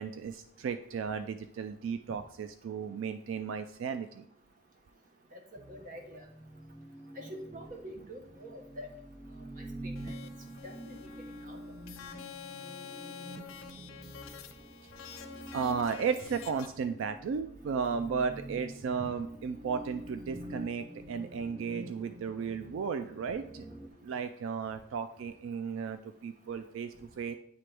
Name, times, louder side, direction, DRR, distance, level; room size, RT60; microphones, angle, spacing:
voice 1, 0.0-4.3 15.5-23.7 24.0-27.3, right 6 dB, 80° right, 9 dB, 0.3 m, -34 dB
sound 1, 5.6-23.9, right 1 dB, 10° right, 0.4 m, -47 dB
voice 2, 5.7-6.2 7.2-8.9 9.6-9.9 10.6-11.0 11.4-11.6 20.4-20.5, equal, 40° right, 2 dB, 1.0 m, -45 dB
sound 2, 9.9-16.7, left 7 dB, 85° left, 0.6 m, -48 dB
9.1 x 3.4 x 3.4 m, 0.69 s
head